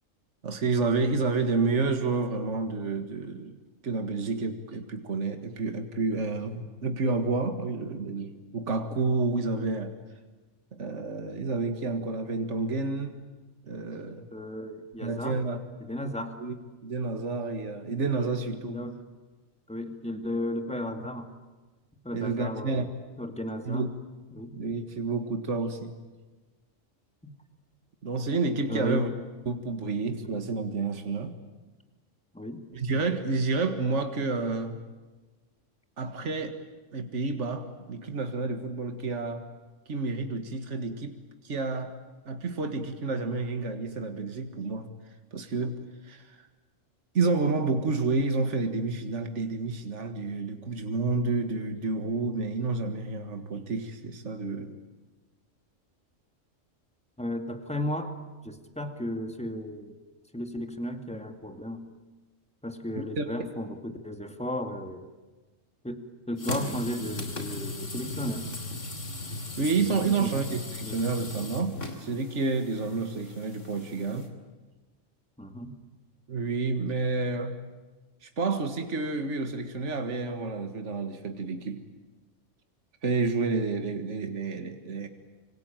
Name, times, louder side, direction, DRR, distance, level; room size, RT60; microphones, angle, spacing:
voice 1, 0.4-3.6 3.8-10.0 10.7-13.3 13.6-14.3 15.0-15.6 16.4-16.6 16.8-18.8 22.1-22.9 23.7-23.9 24.5-26.0 28.0-29.1 29.5-31.3 32.7-34.8 36.0-36.6 36.9-39.5 39.9-41.2 41.4-41.9 42.3-44.9 45.3-46.5 47.1-54.8 63.2-63.3 69.6-74.3 76.3-77.6 78.2-81.8 83.0-85.1, right 3 dB, 65° right, 7 dB, 2.1 m, -29 dB
voice 2, 14.3-15.4 15.8-16.4 18.6-19.0 19.7-21.3 22.0-22.9 23.2-23.9 24.3-24.6 27.2-27.3 28.7-29.1 32.3-32.7 57.2-58.2 58.4-60.0 60.3-61.9 62.6-65.1 65.8-68.5 70.0-70.4 70.8-71.0 75.4-75.8, left 1 dB, 5° left, 6 dB, 2.3 m, -34 dB
sound 1, 66.4-74.3, left 2 dB, 75° left, 3.4 m, -37 dB
25.5 x 25.5 x 9.0 m, 1.3 s
omnidirectional pair, 1.3 m